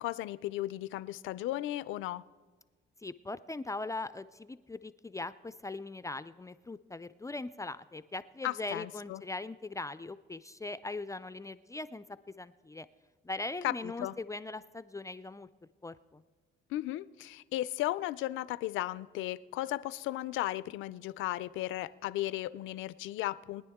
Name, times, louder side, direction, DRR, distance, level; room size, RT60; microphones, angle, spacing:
voice 1, 0.0-2.2 8.4-9.2 13.6-14.1 16.7-23.6, left 15 dB, 90° left, 18 dB, 0.4 m, -35 dB
voice 2, 3.0-12.9 13.2-15.5 15.8-16.2, left 2 dB, 15° left, 14 dB, 0.3 m, -40 dB
21.5 x 10.0 x 3.6 m, 1.4 s
cardioid pair, 90°, 20 cm